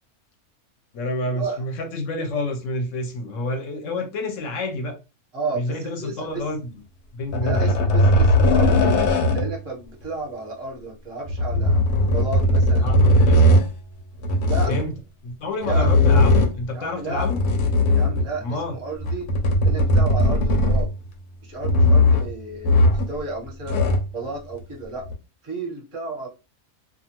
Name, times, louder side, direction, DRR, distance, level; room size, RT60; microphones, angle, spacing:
voice 1, 0.9-5.0 5.5-6.8 7.1-7.8 12.8-13.4 14.7-14.9 15.2-17.4 18.4-18.8, left 2 dB, 60° left, 0.9 m, -29 dB
voice 2, 5.3-6.4 7.4-9.0 9.3-11.8 12.1-13.2 14.5-14.7 15.7-15.9 16.7-17.3 18.0-19.3 19.6-20.9 21.4-23.8 24.1-25.1 25.4-26.3, right 3 dB, 25° right, 0.7 m, -32 dB
sound 1, 7.3-9.6 11.3-13.7 14.2-14.9 15.6-16.7 17.1-18.4 19.0-21.0 21.6-22.3 22.6-23.2 23.5-24.1 25.1-25.2, left 1 dB, 85° left, 1.1 m, -18 dB
2.5 x 2.4 x 2.9 m
omnidirectional pair, 1.6 m